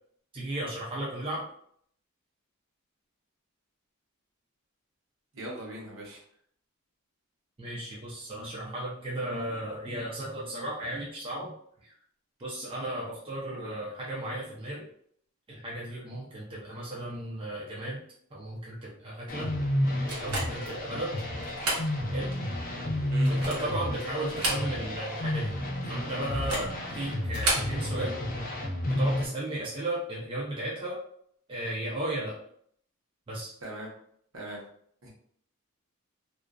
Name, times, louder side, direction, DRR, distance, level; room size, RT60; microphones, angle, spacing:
voice 1, 0.3-1.4 7.6-11.5 11.8-11.9 12.4-14.8 15.5-18.0 18.3-19.5 20.2-21.2 22.1-22.3 23.3-25.5 25.9-28.2 28.9-31.0 31.5-32.4 33.3-33.5, right 1 dB, 25° right, -5 dB, 0.5 m, -35 dB
voice 2, 5.3-6.2 13.5-13.7 23.1-23.3 23.6-23.7 33.6-33.9 34.3-34.6 35.0-35.1, right 1 dB, 65° right, -3 dB, 0.8 m, -40 dB
sound 1, 19.3-29.3, left 1 dB, 40° left, 0.4 m, -31 dB
sound 2, 20.1-20.8 21.4-21.9 22.3-22.4 23.1-23.7 24.2-25.0 25.3-25.4 26.3-26.7 27.3-27.7, right 2 dB, 90° right, 1.0 m, -31 dB
2.5 x 2.4 x 2.2 m, 0.65 s
head